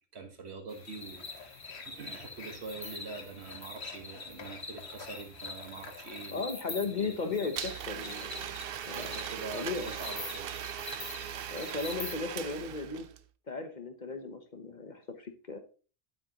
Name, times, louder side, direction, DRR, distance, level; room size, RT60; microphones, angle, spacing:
voice 1, 0.1-6.4 6.9-7.5 8.9-10.5, right 4 dB, 85° right, 5 dB, 1.6 m, -44 dB
sound 1, 0.7-12.2, left 3 dB, 30° left, 1.2 m, -45 dB
sound 2, 0.9-6.3, left 5 dB, 80° left, 1.3 m, -50 dB
voice 2, 6.3-8.6 8.9-9.2 9.5-9.9 11.5-13.1 13.5-15.6, left 4 dB, 50° left, 7 dB, 1.0 m, -36 dB
Domestic sounds home sounds, 7.6-13.2, right 10 dB, 65° right, 0.8 m, -39 dB
9.4 x 8.3 x 2.9 m, 0.36 s
omnidirectional pair, 1.1 m